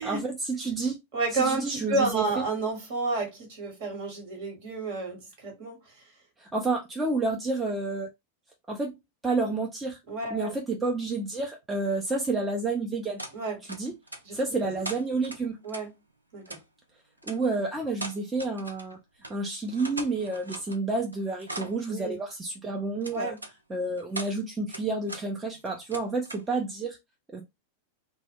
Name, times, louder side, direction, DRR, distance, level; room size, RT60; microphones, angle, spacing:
voice 1, 0.0-1.0 1.3-2.3 6.4-8.1 8.7-9.0 9.2-10.0 10.3-13.2 13.6-13.9 14.3-15.6 17.2-19.0 19.3-23.3 23.7-27.0 27.3-27.4, right 3 dB, 15° right, 0.5 m, -30 dB
voice 2, 1.1-5.8 10.1-10.5 13.3-13.6 14.2-14.7 15.6-15.9 16.3-16.6 21.9-22.2 23.1-23.4, right 3 dB, 50° right, 1.2 m, -30 dB
sound 1, 13.2-13.4 13.7-14.4 14.8-15.8 16.5-16.6 17.2-17.4 17.9-18.9 19.2-19.3 19.6-20.8 21.1-21.8 23.0-23.5 24.0-24.3 24.7-25.2 25.5-26.5, right 2 dB, 85° right, 0.4 m, -40 dB
2.1 x 2.0 x 3.5 m
figure-of-eight pair, 90°, 0 cm